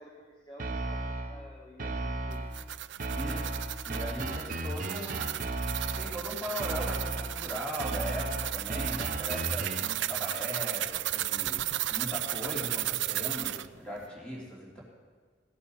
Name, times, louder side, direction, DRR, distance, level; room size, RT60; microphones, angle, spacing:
voice 1, 0.0-2.5, left 1 dB, 25° left, -2 dB, 1.3 m, -51 dB
sound 1, 0.6-1.4 1.8-2.6 3.0-6.2 6.6-7.4 7.8-10.0, right 2 dB, 45° right, 0.9 m, -35 dB
sound 2, 2.3-13.7, right 14 dB, 65° right, 0.4 m, -34 dB
voice 2, 3.1-5.4 5.9-11.6 11.9-14.8, equal, 5° left, -4 dB, 3.3 m, -39 dB
Singing, 3.9-6.9 7.3-9.8 10.2-12.8, left 1 dB, 80° left, 4.0 m, -58 dB
16.5 x 8.4 x 6.6 m, 1.5 s
head